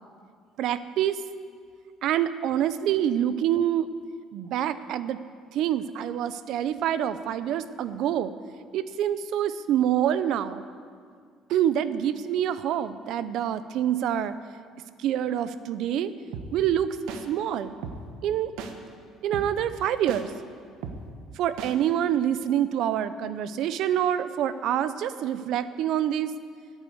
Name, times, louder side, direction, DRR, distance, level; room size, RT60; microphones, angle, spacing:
voice 1, 0.6-1.2 2.0-3.9 4.3-5.2 5.5-8.3 8.7-10.6 11.5-14.4 15.0-16.1 16.5-16.9 17.3-17.7 18.2-18.5 19.2-20.3 21.4-26.3, right 10 dB, 60° right, 13 dB, 0.6 m, -26 dB
sound 1, 16.3-16.5 17.1-17.2 17.8-18.0 18.6-18.7 19.3-19.5 20.1-20.2 20.8-21.0 21.6-21.7, right 7 dB, 90° right, 1.2 m, -35 dB
12.5 x 9.0 x 7.9 m, 2.1 s
cardioid pair, 165°, 0 cm